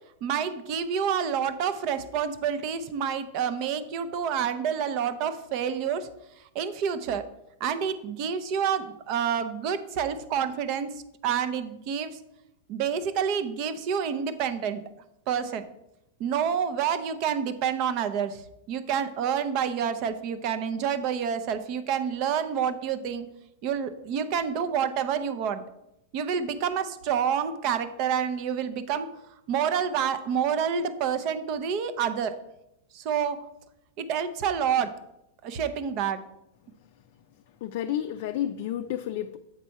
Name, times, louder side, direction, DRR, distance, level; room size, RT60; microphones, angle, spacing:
voice 1, 0.2-6.1 6.4-7.2 7.6-12.2 12.7-14.8 15.3-15.6 16.2-23.3 23.6-25.6 26.1-32.3 32.9-33.4 34.0-34.9 35.4-36.2, right 7 dB, 45° right, 11 dB, 0.6 m, -28 dB
voice 2, 37.6-39.4, left 11 dB, 60° left, 7 dB, 0.3 m, -30 dB
7.4 x 4.1 x 4.6 m, 0.85 s
hypercardioid pair, 130°, 0 cm